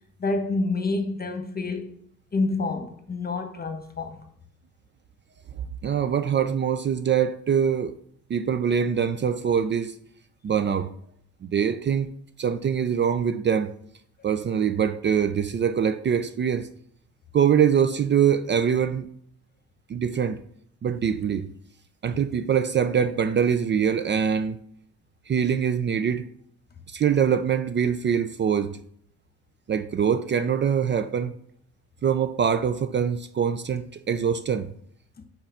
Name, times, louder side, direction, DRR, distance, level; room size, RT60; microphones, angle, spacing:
voice 1, 0.2-1.9 2.3-4.2, left 3 dB, 30° left, 1.1 m, -28 dB
voice 2, 5.8-7.9 8.3-9.9 10.4-10.9 11.4-12.1 12.4-13.7 14.2-16.7 17.3-19.1 19.9-20.4 20.8-21.5 22.0-24.6 25.3-26.2 26.9-28.8 29.7-31.3 32.0-34.7, right 7 dB, 40° right, 0.4 m, -23 dB
5.6 x 4.4 x 5.7 m
cardioid pair, 90°, 30 cm